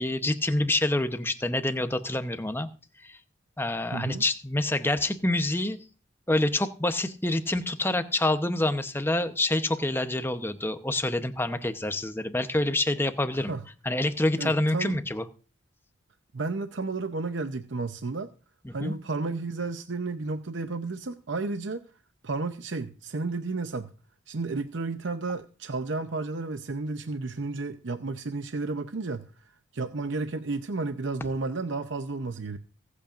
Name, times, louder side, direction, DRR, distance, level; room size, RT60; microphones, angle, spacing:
voice 1, 0.0-2.7 3.0-3.2 3.6-5.8 6.3-13.5 13.8-15.2 18.6-18.9, left 1 dB, 10° left, 9 dB, 0.8 m, -27 dB
voice 2, 3.9-4.2 13.3-13.6 14.4-15.0 16.3-18.3 18.7-21.8 22.2-23.9 24.3-32.6, right 3 dB, 65° right, 9 dB, 0.7 m, -32 dB
24.0 x 8.5 x 2.5 m, 0.38 s
head